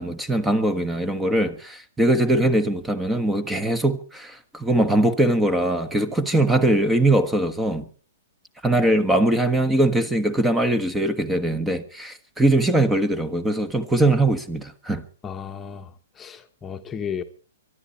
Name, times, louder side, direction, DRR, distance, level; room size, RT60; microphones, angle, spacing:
voice 1, 0.0-7.9 8.6-15.0, right 1 dB, 5° right, 1.3 m, -21 dB
voice 2, 15.2-15.9 16.2-17.2, left 7 dB, 15° left, 1.2 m, -33 dB
24.0 x 11.5 x 4.3 m
hypercardioid pair, 130°, 0 cm